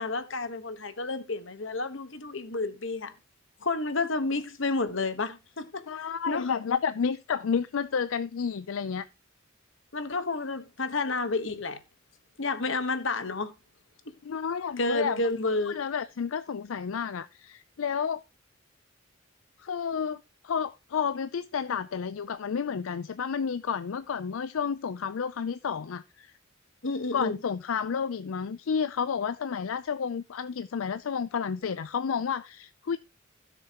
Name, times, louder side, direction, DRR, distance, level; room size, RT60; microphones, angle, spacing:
voice 1, 0.0-3.1 3.6-5.8 6.3-6.5 9.9-11.8 12.4-13.5 14.1-14.2 14.8-15.8 26.8-27.4, left 3 dB, 65° left, 1.2 m, -30 dB
voice 2, 5.9-9.1 14.2-15.2 15.7-18.2 19.6-26.3 27.1-33.0, left 6 dB, 85° left, 0.5 m, -31 dB
16.0 x 6.7 x 2.9 m
head